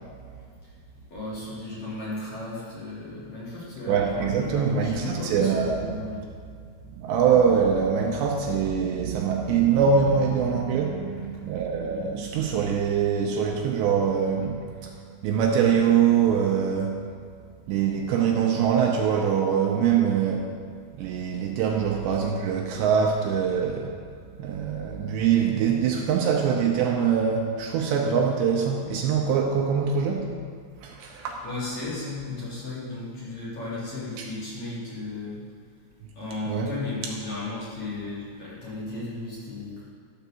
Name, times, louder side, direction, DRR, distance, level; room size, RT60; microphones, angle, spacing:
voice 1, 1.1-6.3 31.0-35.4 36.1-39.7, left 2 dB, 40° left, -10 dB, 4.4 m, -35 dB
voice 2, 3.9-6.0 6.9-14.9 15.2-17.0 17.7-20.5 21.0-24.0 24.4-30.3 30.8-31.4 34.2-34.3 36.5-36.7, right 7 dB, 80° right, 0 dB, 2.8 m, -23 dB
12.5 x 5.8 x 6.9 m, 2.2 s
omnidirectional pair, 5.4 m